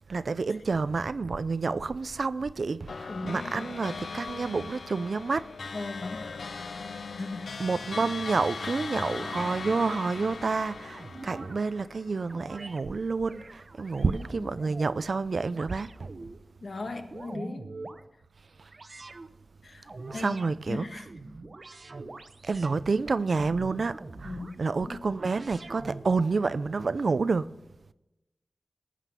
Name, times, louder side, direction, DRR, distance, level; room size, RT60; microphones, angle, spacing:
voice 1, 0.1-6.0 7.6-16.1 18.6-18.7 20.1-21.0 22.4-27.5, right 4 dB, 70° right, 0.5 m, -29 dB
sound 1, 2.9-12.5, left 4 dB, 90° left, 0.6 m, -39 dB
voice 2, 3.1-3.7 5.7-6.4 7.2-7.7 14.0-14.7 16.6-17.7 19.6-20.4 20.7-21.1 22.5-22.6 24.2-25.0, left 3 dB, 65° left, 1.6 m, -38 dB
sound 2, 10.9-11.6 12.3-12.8 13.2-15.1 15.5-16.4 16.9-18.0 18.7-19.3 19.8-20.5 21.0-22.8 23.3-24.6 25.1-26.3, right 3 dB, 50° right, 0.9 m, -44 dB
18.5 x 7.5 x 6.8 m
wide cardioid pair, 90°, 0 cm